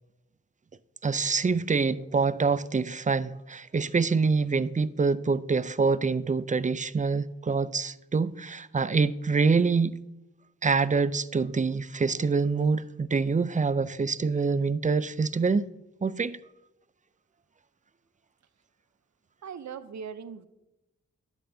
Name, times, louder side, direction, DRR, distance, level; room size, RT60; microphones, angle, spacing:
voice 1, 1.0-10.0 10.6-15.6 16.0-16.4, right 4 dB, 25° right, 0.4 m, -26 dB
voice 2, 19.4-20.4, right 7 dB, 70° right, 0.7 m, -39 dB
9.8 x 8.1 x 2.7 m
cardioid pair, 45°, 29 cm